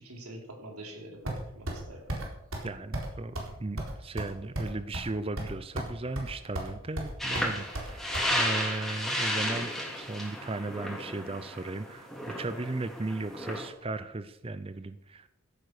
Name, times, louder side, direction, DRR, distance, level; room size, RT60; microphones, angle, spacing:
voice 1, 0.0-2.1, right 1 dB, 90° right, 3 dB, 3.7 m, -45 dB
sound 1, 1.3-1.8 2.1-2.3 2.5-2.7 2.9-3.1 3.4-3.5 3.8-5.1 5.4-5.9 6.2-6.7 7.0-8.3, right 1 dB, 65° right, 4.1 m, -34 dB
voice 2, 2.6-15.3, right 2 dB, 25° right, 12 dB, 0.5 m, -36 dB
sound 2, 7.2-13.7, equal, ahead, 3.1 m, -33 dB
15.0 x 9.2 x 6.6 m, 0.81 s
head